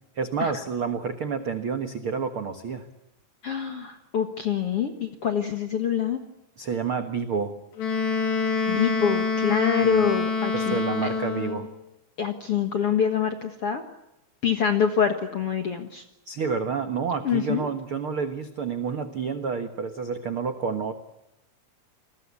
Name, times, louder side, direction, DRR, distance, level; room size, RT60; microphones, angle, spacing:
voice 1, 0.1-2.9 6.6-7.5 9.8-9.9 10.5-11.7 16.3-20.9, right 5 dB, 70° right, 7 dB, 1.2 m, -29 dB
voice 2, 3.4-6.2 8.7-10.8 12.2-13.8 14.4-16.0 17.2-17.6, left 7 dB, 55° left, 6 dB, 1.6 m, -25 dB
Wind instrument woodwind instrument, 7.8-11.7, left 4 dB, 85° left, 5.3 m, -26 dB
29.0 x 20.5 x 8.4 m, 0.88 s
omnidirectional pair, 4.7 m